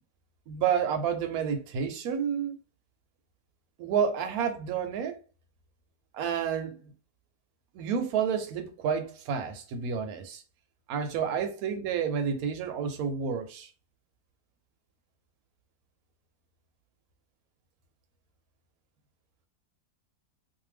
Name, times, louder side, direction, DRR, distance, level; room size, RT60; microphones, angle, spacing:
voice 1, 0.5-2.6 3.8-5.2 6.1-6.9 7.7-10.4 10.9-13.7, right 7 dB, 70° right, 1.0 m, -30 dB
2.7 x 2.2 x 3.2 m
omnidirectional pair, 1.8 m